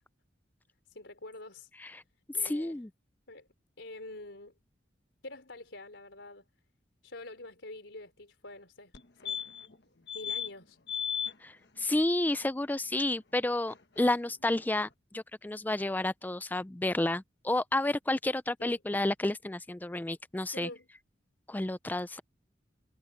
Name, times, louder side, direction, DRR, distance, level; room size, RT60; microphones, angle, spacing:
voice 1, 0.9-1.7 2.4-2.8 3.3-3.5 3.8-4.5 5.2-6.4 7.0-8.9 9.2-9.4 10.1-10.8 18.6-18.8 20.5-20.9, left 2 dB, 85° left, 4.0 m, -46 dB
voice 2, 2.4-2.9 11.4-20.7 21.5-22.2, left 1 dB, 10° left, 0.4 m, -31 dB
sound 1, 8.9-9.0 9.3-9.7 10.1-10.5 10.9-11.3 13.7-13.8 14.0-14.1, left 9 dB, 65° left, 1.3 m, -34 dB
head